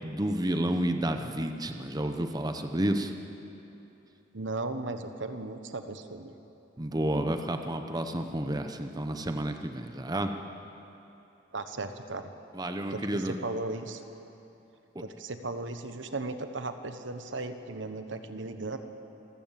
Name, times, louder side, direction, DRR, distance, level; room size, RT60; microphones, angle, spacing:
voice 1, 0.0-3.1 6.8-10.3 12.5-13.4 14.9-15.0, right 1 dB, 20° right, 6 dB, 0.9 m, -30 dB
voice 2, 4.3-6.3 11.5-12.3 12.9-14.0 15.0-18.8, right 2 dB, 75° right, 9 dB, 1.2 m, -36 dB
27.0 x 14.5 x 7.5 m, 2.9 s
head